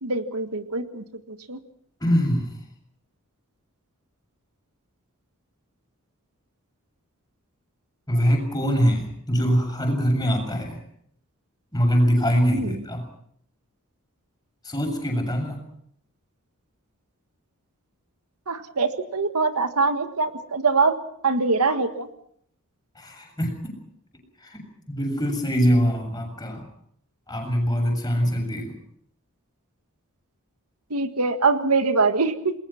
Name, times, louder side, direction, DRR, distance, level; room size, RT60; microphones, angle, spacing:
voice 1, 0.0-1.0 1.5-1.6 12.5-12.7 18.5-21.0 21.2-22.1 30.9-32.5, right 4 dB, 85° right, 8 dB, 1.7 m, -23 dB
voice 2, 2.0-2.5 8.1-10.8 11.7-13.1 14.6-15.6 23.0-23.7 24.4-26.7 27.3-28.7, equal, 15° left, 2 dB, 7.0 m, -23 dB
28.5 x 21.0 x 5.9 m, 0.66 s
head